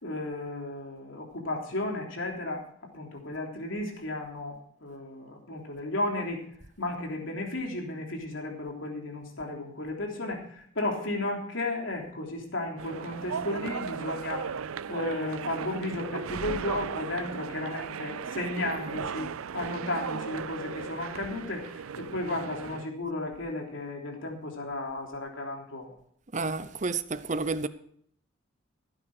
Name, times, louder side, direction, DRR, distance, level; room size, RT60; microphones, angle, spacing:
voice 1, 0.0-2.6 2.9-6.4 6.8-14.5 14.9-25.9, left 2 dB, 70° left, 3.3 m, -34 dB
sound 1, 12.8-22.9, right 6 dB, 90° right, 0.5 m, -36 dB
voice 2, 26.3-27.7, right 3 dB, 35° right, 0.7 m, -30 dB
16.0 x 9.0 x 4.9 m
head